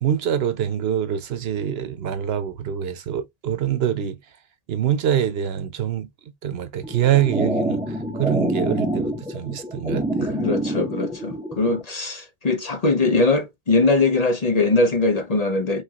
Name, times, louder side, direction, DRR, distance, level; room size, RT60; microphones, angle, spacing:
voice 1, 0.0-4.2 4.7-6.1 6.4-7.8 8.1-10.4, right 10 dB, 75° right, 0.9 m, -24 dB
sound 1, 6.8-11.8, right 1 dB, 5° right, 0.7 m, -26 dB
voice 2, 10.3-15.8, left 3 dB, 40° left, 0.9 m, -21 dB
5.1 x 3.3 x 2.8 m
omnidirectional pair, 1.1 m